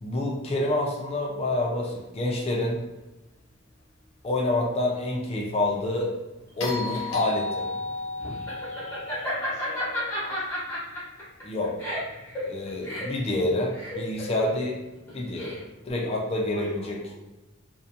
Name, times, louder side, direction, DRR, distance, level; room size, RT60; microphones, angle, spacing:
voice 1, 0.0-2.8 4.2-6.1 6.6-7.7 11.4-11.7 12.5-14.8 15.1-15.6 15.9-17.0, left 1 dB, 30° left, -1 dB, 0.3 m, -27 dB
Laughter, 6.5-15.9, left 1 dB, 10° left, 0.8 m, -33 dB
sound 1, 6.6-10.9 13.1-13.2, left 3 dB, 85° left, 0.5 m, -34 dB
voice 2, 9.2-10.5 16.5-17.1, equal, 60° right, -4 dB, 0.7 m, -45 dB
2.6 x 2.1 x 2.6 m, 1.0 s
head